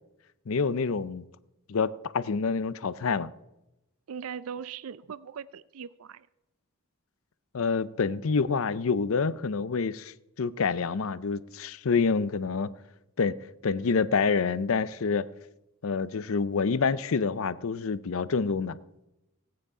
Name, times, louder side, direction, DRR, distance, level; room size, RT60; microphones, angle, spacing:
voice 1, 0.5-1.2 1.7-3.3 7.5-12.7 13.2-13.4 13.6-15.3 15.8-18.8, left 5 dB, 70° left, 0.5 m, -27 dB
voice 2, 4.1-6.3, right 7 dB, 80° right, 0.4 m, -39 dB
17.0 x 9.3 x 4.9 m
head